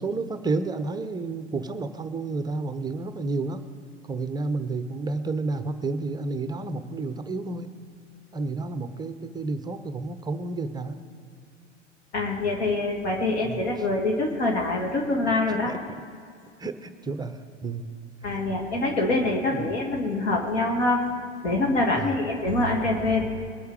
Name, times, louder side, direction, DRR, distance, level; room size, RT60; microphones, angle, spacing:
voice 1, 0.0-3.6 4.1-7.7 8.3-11.0 13.4-13.6 15.7-15.8 16.6-17.9 18.2-18.4 19.5-19.7 21.9-22.1, right 3 dB, 10° right, 10 dB, 0.6 m, -31 dB
voice 2, 12.1-15.7 18.2-21.0 21.4-23.2, left 2 dB, 60° left, 0 dB, 2.2 m, -25 dB
21.5 x 8.1 x 4.8 m, 2.3 s
figure-of-eight pair, 85°, 37 cm